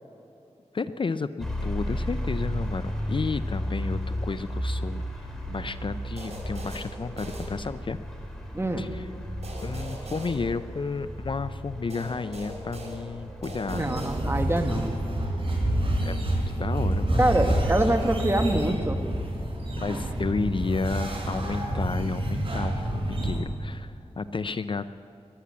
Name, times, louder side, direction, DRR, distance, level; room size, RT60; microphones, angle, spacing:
voice 1, 0.7-5.0 5.5-8.0 8.8-9.1 9.6-13.9 16.0-17.2 19.8-24.9, left 4 dB, 45° left, 13 dB, 0.5 m, -32 dB
sound 1, 1.4-15.1, equal, 5° left, 3.3 m, -34 dB
sound 2, 6.2-8.1 9.4-11.2 11.9-14.7, right 1 dB, 65° right, 3.7 m, -41 dB
voice 2, 8.5-8.9 13.7-14.9 17.2-19.0, right 1 dB, 20° right, 5 dB, 1.5 m, -25 dB
sound 3, 13.7-23.4, right 1 dB, 50° right, 4.4 m, -28 dB
14.5 x 11.5 x 8.3 m, 2.8 s
cardioid pair, 60°, 12 cm